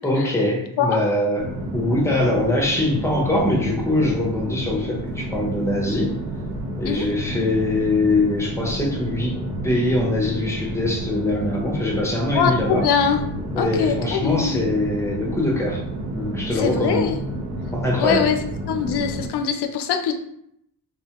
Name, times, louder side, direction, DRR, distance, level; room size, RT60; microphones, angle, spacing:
voice 1, 0.0-6.2 6.8-9.4 9.6-12.9 13.5-15.8 16.1-17.2 17.7-18.3, left 1 dB, 5° left, -2 dB, 0.6 m, -23 dB
sound 1, 1.4-19.3, right 1 dB, 65° right, 0.7 m, -30 dB
voice 2, 12.3-13.2 13.6-14.6 16.5-17.1 18.0-18.4 18.7-20.1, left 7 dB, 70° left, 5 dB, 0.5 m, -22 dB
3.6 x 2.2 x 2.8 m, 0.72 s
wide cardioid pair, 145°, 41 cm